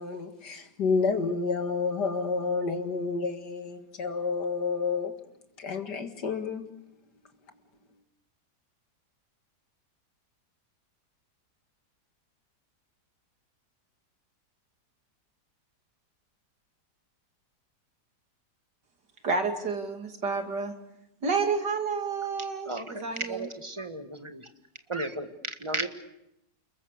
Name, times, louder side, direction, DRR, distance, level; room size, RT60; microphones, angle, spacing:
voice 1, 0.0-5.1 5.6-6.7, left 4 dB, 75° left, 2.5 m, -29 dB
voice 2, 19.2-20.7 21.2-23.4, right 4 dB, 80° right, 3.2 m, -30 dB
voice 3, 22.7-24.5 24.9-25.9, right 2 dB, 20° right, 1.7 m, -34 dB
29.5 x 21.0 x 6.7 m
omnidirectional pair, 1.8 m